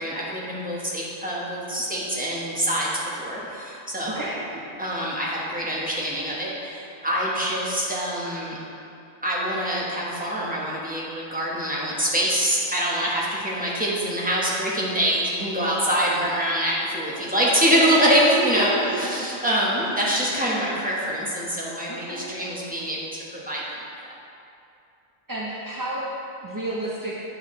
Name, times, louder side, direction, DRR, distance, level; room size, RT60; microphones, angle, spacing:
voice 1, 0.0-2.9 3.2-4.2 4.8-8.6 9.2-23.6, equal, 5° right, -6 dB, 1.1 m, -25 dB
voice 2, 4.1-4.4 18.4-19.5 21.9-22.3 25.3-26.1 26.4-27.2, right 1 dB, 30° right, -5 dB, 0.4 m, -31 dB
8.2 x 6.2 x 3.2 m, 2.6 s
omnidirectional pair, 1.3 m